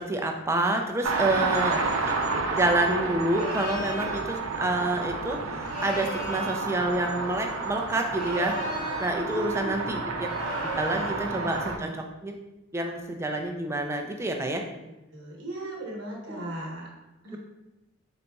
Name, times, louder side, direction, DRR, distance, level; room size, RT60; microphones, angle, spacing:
voice 1, 0.0-1.8 2.5-10.0 10.8-12.4 12.7-14.6 16.3-16.4, right 2 dB, 15° right, 3 dB, 0.3 m, -28 dB
sound 1, 1.0-11.8, right 3 dB, 85° right, 0.5 m, -30 dB
voice 2, 1.2-1.8 9.2-10.1 11.2-12.0 15.1-16.9 17.2-17.4, right 1 dB, 65° right, -2 dB, 1.0 m, -37 dB
sound 2, 3.3-4.2 5.6-6.7 8.0-9.2 10.2-11.3, left 1 dB, 45° left, 0.8 m, -37 dB
4.0 x 3.9 x 2.3 m, 0.99 s
head